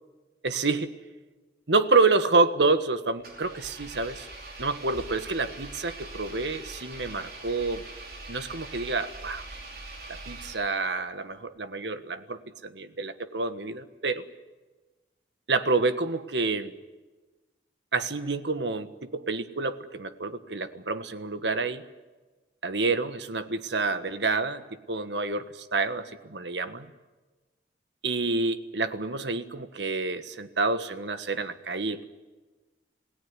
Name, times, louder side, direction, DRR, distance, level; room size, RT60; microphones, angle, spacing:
voice 1, 0.4-0.9 1.7-4.3 4.6-7.8 8.3-9.5 10.1-14.2 15.5-16.7 17.9-21.8 22.6-26.9 28.0-32.1, right 3 dB, 85° right, 11 dB, 1.5 m, -28 dB
Engine, 3.2-11.0, right 2 dB, 55° right, 5.1 m, -43 dB
27.5 x 17.5 x 9.8 m, 1.2 s
head